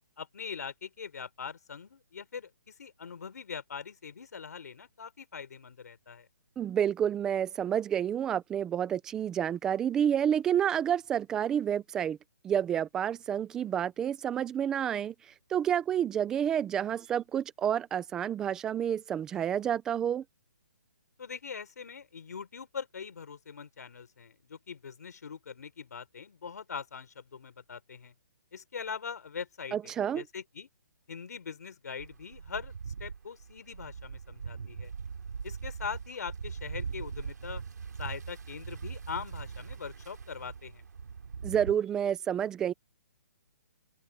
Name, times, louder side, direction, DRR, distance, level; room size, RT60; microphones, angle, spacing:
voice 1, 0.2-6.3 21.2-28.1 28.5-30.7 31.1-32.7 33.0-34.9 35.4-37.6 38.0-40.8, left 6 dB, 70° left, 3.7 m, -42 dB
voice 2, 6.6-12.2 12.4-15.1 15.5-20.2 29.7-30.2 41.4-42.7, right 9 dB, 5° right, 0.4 m, -29 dB
sound 1, 32.0-41.7, right 6 dB, 80° right, 3.6 m, -41 dB
hypercardioid pair, 175°, 9 cm